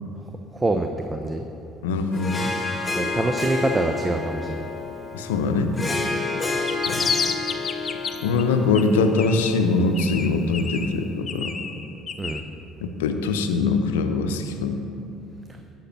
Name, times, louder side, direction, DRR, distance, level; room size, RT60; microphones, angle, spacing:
voice 1, 0.5-1.4 2.9-4.6 12.2-12.4, right 2 dB, 20° right, 5 dB, 0.7 m, -25 dB
voice 2, 1.8-2.5 5.1-5.8 6.9-7.1 8.2-11.5 12.8-14.8, left 4 dB, 80° left, 7 dB, 0.6 m, -23 dB
Harp, 2.1-10.8, left 3 dB, 20° left, 1.8 m, -30 dB
sound 1, 6.5-8.4 8.7-9.7 9.9-12.4, left 6 dB, 40° left, 0.7 m, -30 dB
11.5 x 5.8 x 5.9 m, 2.7 s
hypercardioid pair, 60°, 0 cm